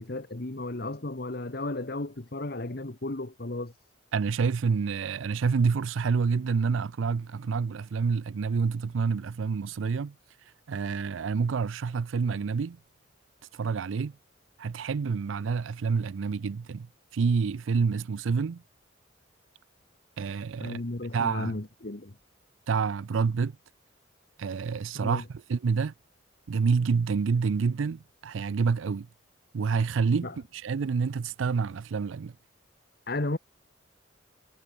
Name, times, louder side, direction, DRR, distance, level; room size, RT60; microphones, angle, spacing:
voice 1, 0.0-3.7 20.6-22.2 24.9-25.2 30.2-30.3 33.1-33.4, left 2 dB, 50° left, 1.3 m, -34 dB
voice 2, 4.1-10.1 10.7-12.8 13.5-14.1 14.6-18.6 20.2-20.8 21.1-21.5 22.7-23.5 24.4-25.9 26.5-29.1 29.5-32.3, right 5 dB, 85° right, 0.4 m, -28 dB
head